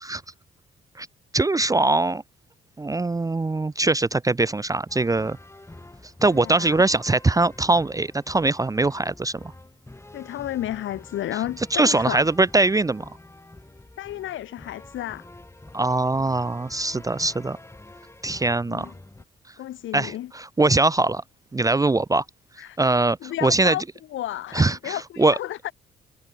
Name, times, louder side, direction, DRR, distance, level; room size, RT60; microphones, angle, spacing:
voice 1, 1.3-2.2 2.8-5.4 6.2-9.5 11.7-13.1 15.7-17.6 18.2-18.9 19.9-21.2 21.5-22.2 22.8-23.7 24.5-25.3, right 2 dB, 15° right, 0.7 m, -22 dB
sound 1, 4.9-19.2, left 2 dB, 15° left, 5.9 m, -46 dB
voice 2, 6.3-6.8 10.1-12.2 14.0-15.3 18.7-18.9 19.6-20.3 22.6-22.8 23.2-23.8 24.1-25.7, left 13 dB, 80° left, 3.7 m, -32 dB
cardioid pair, 90°, 20 cm